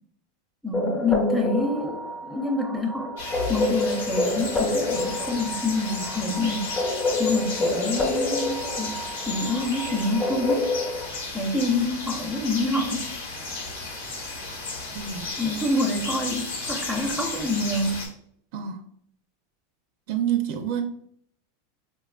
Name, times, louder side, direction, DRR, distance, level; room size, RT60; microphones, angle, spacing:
voice 1, 0.6-3.2 3.5-6.7 7.2-10.7 11.3-13.1 15.4-18.2, left 2 dB, 5° right, 2 dB, 0.7 m, -27 dB
sound 1, 0.7-11.1, left 2 dB, 25° left, 0.8 m, -28 dB
sound 2, 3.2-18.1, left 3 dB, 85° left, 1.1 m, -34 dB
voice 2, 14.9-15.3 18.5-18.8 20.1-20.8, right 10 dB, 60° right, 6 dB, 0.4 m, -27 dB
4.2 x 2.3 x 2.3 m, 0.65 s
supercardioid pair, 120°, 0 cm